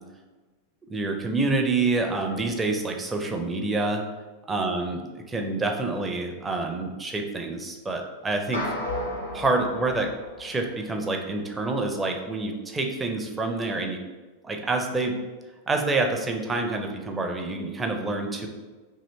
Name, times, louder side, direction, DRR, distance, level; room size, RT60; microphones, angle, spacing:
voice 1, 0.9-4.0 4.5-5.0 5.3-8.8 9.3-10.1 10.4-14.0 14.4-15.1 15.7-18.5, right 3 dB, 15° right, 2 dB, 0.4 m, -27 dB
sound 1, 8.5-11.0, left 1 dB, 85° left, 0.6 m, -34 dB
2.7 x 2.6 x 3.1 m, 1.3 s
figure-of-eight pair, 90°, 0 cm